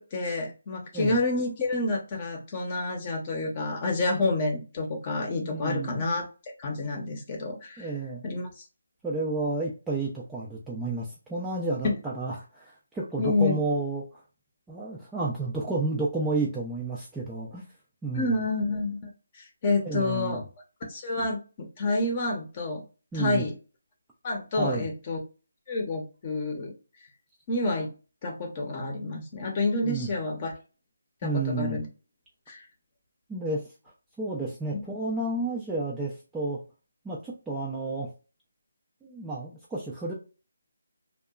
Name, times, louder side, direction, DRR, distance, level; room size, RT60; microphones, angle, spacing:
voice 1, 0.0-6.2 6.6-7.9 8.2-8.6 11.8-12.0 13.2-13.6 18.1-19.1 19.3-20.4 20.9-22.8 23.1-23.5 24.2-25.2 25.7-26.7 27.5-27.9 28.2-30.5 31.2-31.3 31.6-31.9 32.5-32.7, left 2 dB, 25° left, 2 dB, 0.7 m, -28 dB
voice 2, 5.4-6.0 7.8-8.2 9.0-14.2 14.7-17.6 18.0-18.4 19.8-20.4 23.1-23.5 24.6-24.9 29.8-30.1 31.2-31.8 33.3-33.6 34.2-36.6 37.0-38.1 39.0-40.1, right 3 dB, 5° right, -6 dB, 0.3 m, -31 dB
2.8 x 2.2 x 2.3 m, 0.32 s
figure-of-eight pair, 170°, 0 cm